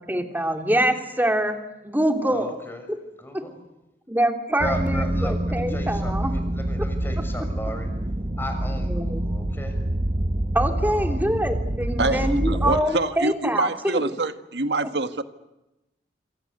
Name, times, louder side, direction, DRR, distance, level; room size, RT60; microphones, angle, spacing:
voice 1, 0.1-1.6 1.8-2.6 2.9-3.0 3.3-3.4 4.1-6.3 8.9-9.2 10.5-14.1, right 1 dB, 10° right, 5 dB, 3.2 m, -24 dB
voice 2, 2.3-2.9 3.2-3.6 4.6-7.9 8.4-9.8 10.8-11.4 12.0-12.3, equal, 15° left, 6 dB, 6.6 m, -36 dB
sound 1, 4.6-12.8, right 1 dB, 35° right, 1.0 m, -26 dB
voice 3, 12.0-15.2, right 2 dB, 80° right, 9 dB, 1.7 m, -26 dB
28.0 x 26.5 x 8.0 m, 0.94 s
head